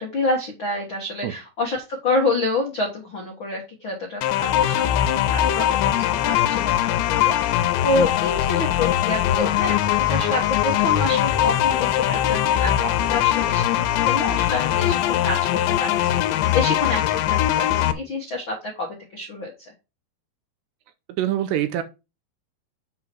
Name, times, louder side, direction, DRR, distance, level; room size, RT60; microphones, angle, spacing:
voice 1, 0.0-13.7 14.0-15.4 15.8-18.9 19.1-19.7, left 2 dB, 75° left, 1.1 m, -28 dB
sound 1, 4.2-17.9, left 12 dB, 90° left, 3.0 m, -21 dB
voice 2, 21.2-21.8, right 12 dB, 80° right, 2.7 m, -24 dB
7.8 x 5.6 x 4.5 m
omnidirectional pair, 5.3 m